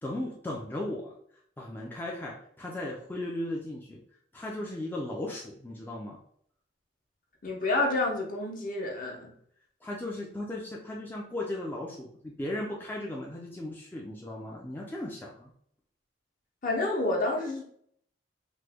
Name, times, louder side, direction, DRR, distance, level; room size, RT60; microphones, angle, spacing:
voice 1, 0.0-1.1 1.6-4.0 4.3-6.2 9.8-15.5, left 1 dB, 10° left, -3 dB, 0.4 m, -36 dB
voice 2, 7.4-9.3 16.6-17.6, left 2 dB, 50° left, 0 dB, 0.7 m, -29 dB
3.0 x 2.2 x 3.3 m, 0.66 s
head